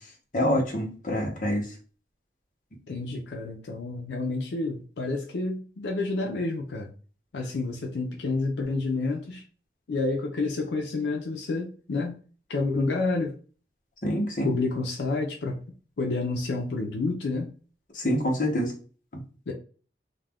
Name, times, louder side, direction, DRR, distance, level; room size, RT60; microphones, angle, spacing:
voice 1, 0.3-1.6 14.0-14.5 18.0-18.7, equal, 45° left, 0.8 m, -26 dB
voice 2, 2.9-6.9 7.3-9.4 9.9-12.2 12.5-13.4 14.4-15.6 16.0-17.5 19.5-19.6, left 3 dB, 80° left, 0.4 m, -29 dB
2.4 x 2.1 x 3.3 m
head